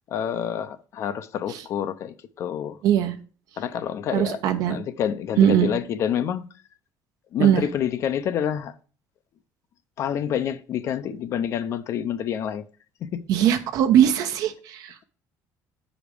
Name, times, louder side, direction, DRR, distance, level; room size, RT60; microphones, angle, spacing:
voice 1, 0.1-2.8 3.6-4.4 4.6-6.5 7.3-8.7 10.0-12.6 13.0-13.2, left 9 dB, 45° left, 0.6 m, -28 dB
voice 2, 2.8-3.2 4.1-4.8 5.4-5.7 7.4-7.6 13.3-15.0, right 10 dB, 60° right, 1.0 m, -20 dB
9.1 x 5.1 x 4.9 m
cardioid pair, 165°, 7 cm